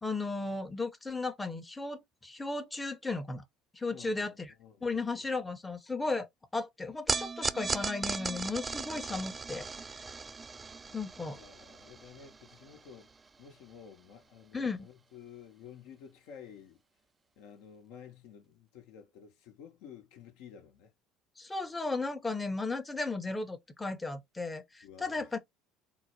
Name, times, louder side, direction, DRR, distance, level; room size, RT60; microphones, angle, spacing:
voice 1, 0.0-3.4 3.7-4.5 4.8-6.3 6.5-9.7 9.9-10.0 10.9-11.4 14.5-14.9 21.4-25.4, left 3 dB, 15° left, 0.8 m, -35 dB
voice 2, 3.9-5.5 10.8-11.0 11.3-13.1 13.4-16.8 17.4-20.9 24.8-25.3, left 8 dB, 65° left, 0.8 m, -52 dB
sound 1, 7.1-13.5, right 4 dB, 25° right, 0.4 m, -37 dB
3.8 x 2.1 x 3.0 m
hypercardioid pair, 60°, 0 cm